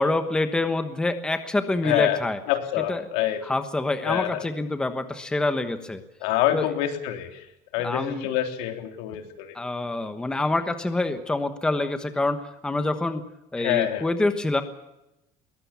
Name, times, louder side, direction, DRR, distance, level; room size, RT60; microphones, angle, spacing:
voice 1, 0.0-2.4 2.9-3.1 3.4-6.0 6.5-6.7 7.8-8.3 9.5-13.2 13.5-14.6, left 2 dB, 5° left, 8 dB, 1.2 m, -26 dB
voice 2, 1.8-2.2 2.5-3.4 4.0-4.4 6.2-7.3 7.7-9.6 13.6-14.0, left 12 dB, 90° left, 5 dB, 3.3 m, -26 dB
22.0 x 18.0 x 7.1 m, 0.90 s
cardioid pair, 175°, 13 cm